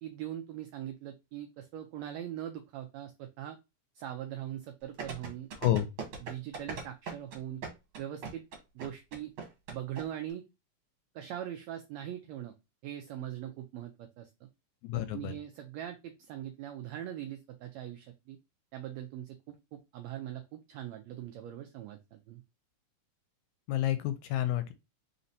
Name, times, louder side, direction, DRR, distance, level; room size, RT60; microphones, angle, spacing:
voice 1, 0.0-3.6 3.9-5.7 6.2-7.6 8.0-8.5 8.7-9.3 9.7-10.4 11.1-12.5 12.8-14.3 14.9-18.4 18.7-22.4, right 11 dB, 90° right, 1.5 m, -41 dB
sound 1, 5.0-10.0 10.3-10.4, right 4 dB, 55° right, 1.7 m, -39 dB
voice 2, 14.8-15.3 23.7-24.7, left 13 dB, 80° left, 1.8 m, -29 dB
4.1 x 4.1 x 2.6 m
omnidirectional pair, 3.6 m